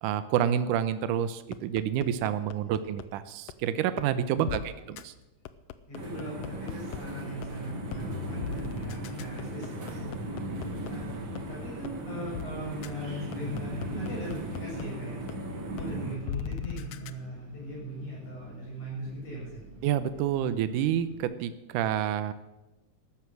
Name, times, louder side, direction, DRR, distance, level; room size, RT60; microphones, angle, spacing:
voice 1, 0.0-5.1 19.8-22.3, right 10 dB, 80° right, 12 dB, 2.2 m, -28 dB
sound 1, 1.5-3.0 3.5-3.6 4.0-4.1 4.5-4.6 5.0-5.1 5.4-7.0 7.4-7.5 7.9-8.0 8.4-10.9 11.4-11.5 11.8-11.9 12.3-12.5 12.8-12.9 13.3-14.8 15.3-15.4 15.8-15.9 16.3-17.1, left 11 dB, 90° left, 2.3 m, -38 dB
voice 2, 4.3-4.8 5.9-10.3 10.7-11.1 11.5-15.5 15.7-19.6, equal, 50° left, -4 dB, 7.9 m, -40 dB
sound 2, 5.9-16.2, right 1 dB, 40° right, 2.3 m, -37 dB
Wind, 10.2-21.2, right 1 dB, 60° right, 4.8 m, -52 dB
13.0 x 13.0 x 6.3 m, 1.0 s
omnidirectional pair, 3.8 m